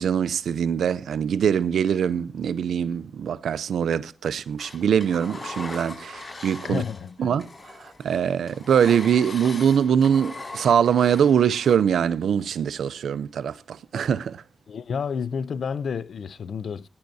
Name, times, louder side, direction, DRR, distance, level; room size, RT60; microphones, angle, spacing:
voice 1, 0.0-6.8 7.2-14.4, right 8 dB, 90° right, 0.6 m, -23 dB
Engine, 4.6-7.1 7.4-11.8, left 2 dB, 40° left, 5.9 m, -40 dB
voice 2, 6.6-7.2 14.7-16.9, left 6 dB, 75° left, 0.5 m, -30 dB
19.0 x 10.5 x 2.7 m
cardioid pair, 65°, 0 cm